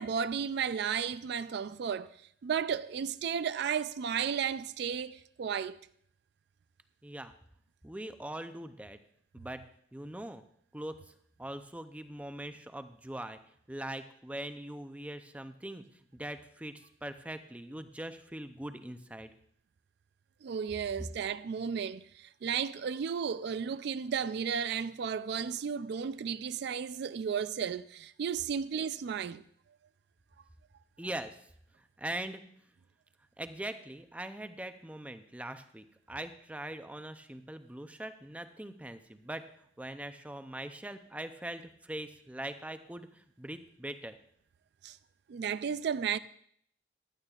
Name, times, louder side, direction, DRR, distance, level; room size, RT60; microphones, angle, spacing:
voice 1, 0.0-2.1 2.4-5.8 20.4-29.4 44.8-45.0 45.3-46.2, right 7 dB, 60° right, 0.3 m, -33 dB
voice 2, 7.0-7.3 7.8-9.0 9.3-9.6 9.9-10.4 10.7-11.0 11.4-13.4 13.7-15.8 16.1-19.3 31.0-31.4 32.0-32.4 33.4-39.4 39.8-44.2, right 1 dB, 5° right, 0.5 m, -41 dB
15.5 x 11.5 x 2.4 m
head